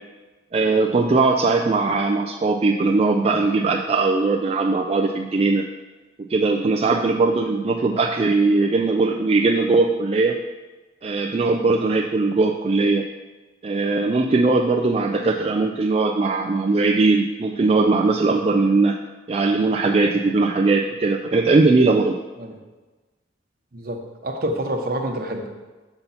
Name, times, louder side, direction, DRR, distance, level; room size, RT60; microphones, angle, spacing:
voice 1, 0.5-5.7 6.3-10.3 11.0-13.0 13.6-19.0 19.3-22.1, right 3 dB, 35° right, 1 dB, 0.3 m, -19 dB
voice 2, 23.7-25.5, right 1 dB, 55° right, 3 dB, 0.9 m, -28 dB
6.9 x 4.1 x 5.6 m, 1.2 s
head